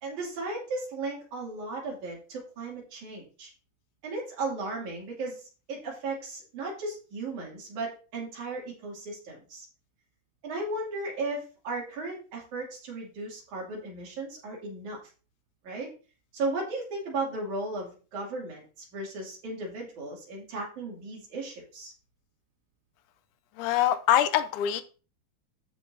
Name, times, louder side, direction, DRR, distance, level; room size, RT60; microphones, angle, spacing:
voice 1, 0.0-3.5 4.0-9.7 10.4-15.0 15.6-15.9 16.3-21.9, right 2 dB, 70° right, 3.9 m, -35 dB
voice 2, 23.6-24.8, left 11 dB, 80° left, 2.2 m, -24 dB
14.5 x 5.0 x 2.7 m
omnidirectional pair, 3.7 m